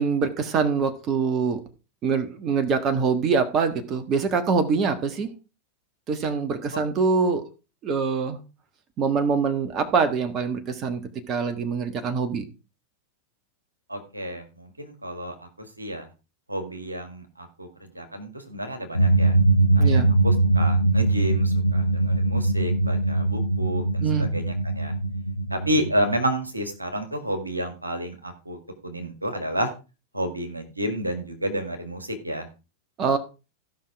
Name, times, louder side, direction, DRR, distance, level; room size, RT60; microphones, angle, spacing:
voice 1, 0.0-1.6 2.0-5.3 6.1-7.4 7.8-8.4 9.0-11.0 11.3-12.4 19.8-20.1 24.0-24.3 33.0-33.2, right 5 dB, 30° right, 8 dB, 1.5 m, -24 dB
voice 2, 13.9-15.5 15.8-16.1 16.5-19.3 19.8-24.9 25.5-28.6 28.8-29.7 30.1-32.5, equal, 85° right, 6 dB, 1.8 m, -30 dB
sound 1, 18.9-26.2, right 2 dB, 85° left, 0.4 m, -21 dB
14.5 x 5.8 x 4.7 m, 0.31 s
figure-of-eight pair, 90°, 0 cm